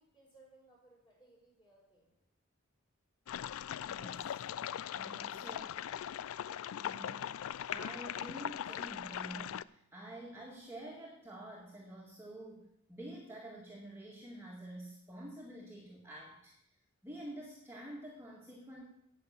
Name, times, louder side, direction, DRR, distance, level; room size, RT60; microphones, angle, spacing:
voice 1, 0.0-2.2, right 2 dB, 20° left, -3 dB, 5.0 m, -63 dB
sound 1, 3.3-9.6, left 10 dB, 85° left, 0.4 m, -40 dB
voice 2, 3.8-4.4 5.0-5.8 6.8-16.5 17.0-18.8, right 1 dB, 10° right, -3 dB, 1.8 m, -48 dB
9.3 x 7.8 x 8.5 m, 0.76 s
head